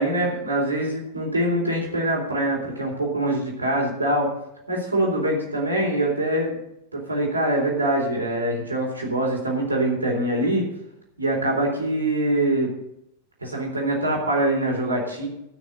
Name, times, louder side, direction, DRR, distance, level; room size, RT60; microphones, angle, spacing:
voice 1, 0.0-4.3 4.7-6.6 6.9-10.6 11.2-12.7 13.4-15.3, right 1 dB, 80° right, -1 dB, 3.8 m, -24 dB
13.0 x 6.4 x 7.8 m, 0.81 s
figure-of-eight pair, 90°, 0 cm